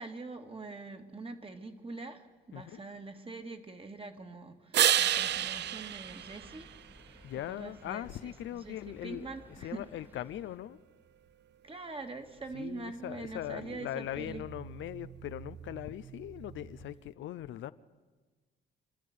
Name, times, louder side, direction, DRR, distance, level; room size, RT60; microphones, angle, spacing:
voice 1, 0.0-6.8 7.0-9.8 11.6-14.4, right 3 dB, 30° right, 2.1 m, -44 dB
sound 1, 4.7-7.3 13.0-17.0, right 11 dB, 60° right, 0.6 m, -33 dB
sound 2, 5.1-10.6, equal, 10° right, 1.5 m, -57 dB
voice 2, 7.2-9.3 9.6-10.8 12.5-17.7, left 12 dB, 75° left, 0.7 m, -40 dB
27.0 x 12.0 x 9.6 m
cardioid pair, 90°, 20 cm